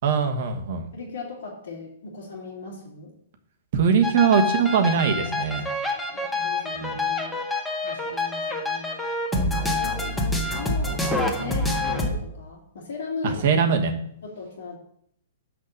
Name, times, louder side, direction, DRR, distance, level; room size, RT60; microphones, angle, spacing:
voice 1, 0.0-0.9 3.7-5.7 6.8-7.0 9.3-9.7 13.2-13.9, right 6 dB, 55° right, 6 dB, 1.3 m, -22 dB
voice 2, 0.9-3.1 5.5-7.4 7.8-9.0 9.4-13.4 14.2-14.8, left 3 dB, 70° left, -5 dB, 2.0 m, -37 dB
sound 1, 4.0-12.1, left 2 dB, 5° left, 1.6 m, -27 dB
6.2 x 5.3 x 6.6 m, 0.70 s
hypercardioid pair, 115°, 0 cm